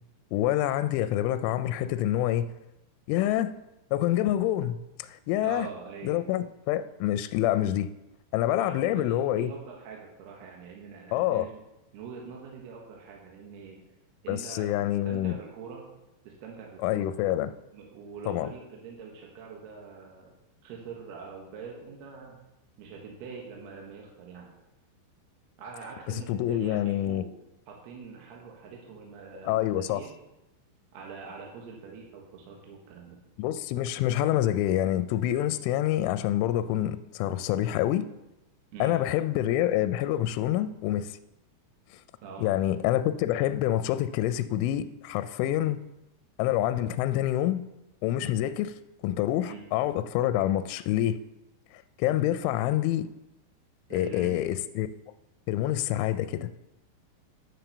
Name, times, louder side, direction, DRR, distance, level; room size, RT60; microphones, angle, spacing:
voice 1, 0.3-2.5 3.1-3.5 3.9-5.7 6.0-7.9 8.3-9.5 11.1-11.5 14.3-15.4 16.8-17.5 18.3-18.5 26.1-27.2 29.4-30.0 33.4-38.0 38.8-41.2 42.4-45.8 46.4-47.6 48.0-48.7 49.0-51.2 51.7-53.1 53.9-54.9 55.5-56.5, left 13 dB, 85° left, 3.0 m, -27 dB
voice 2, 5.4-6.2 8.5-11.6 11.9-13.8 14.2-15.9 16.2-17.1 17.7-20.3 20.6-22.4 22.8-24.5 25.6-27.3 27.7-30.1 30.9-33.2 38.7-39.0 42.2-42.6 49.4-49.6 53.9-54.5, right 5 dB, 65° right, 3.2 m, -44 dB
10.5 x 7.7 x 6.8 m
omnidirectional pair, 5.5 m